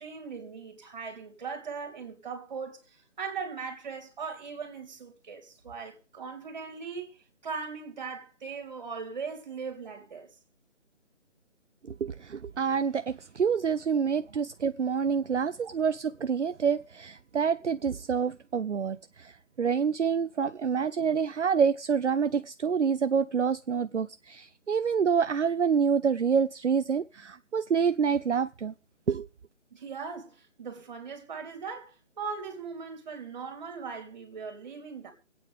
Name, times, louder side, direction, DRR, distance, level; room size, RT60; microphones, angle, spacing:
voice 1, 0.0-7.1 7.4-10.3 29.7-35.1, right 5 dB, 35° right, 3.4 m, -39 dB
voice 2, 11.8-28.7 29.1-29.3, right 6 dB, 70° right, 0.6 m, -27 dB
26.0 x 9.0 x 3.5 m
figure-of-eight pair, 150°, 36 cm